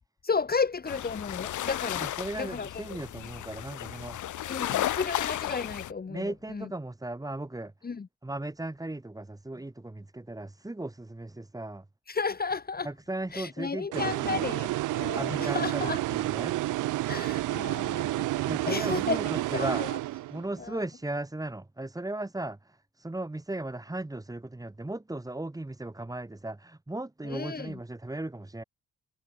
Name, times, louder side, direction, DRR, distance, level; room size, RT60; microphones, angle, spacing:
voice 1, 0.2-2.0 2.4-2.7 4.5-6.7 7.8-8.1 12.1-12.9 13.3-16.0 17.1-18.3 18.7-20.0 20.6-20.8 27.2-27.8, left 5 dB, 30° left, 2.2 m, -33 dB
sound 1, 0.9-5.9, left 13 dB, 75° left, 4.4 m, -34 dB
voice 2, 2.0-4.2 6.1-7.7 8.2-11.8 12.8-14.5 15.1-16.6 18.4-19.8 20.3-28.6, right 2 dB, 10° right, 3.1 m, -36 dB
sound 2, 13.9-20.6, right 17 dB, 85° right, 1.2 m, -30 dB
cardioid pair, 90°, 30 cm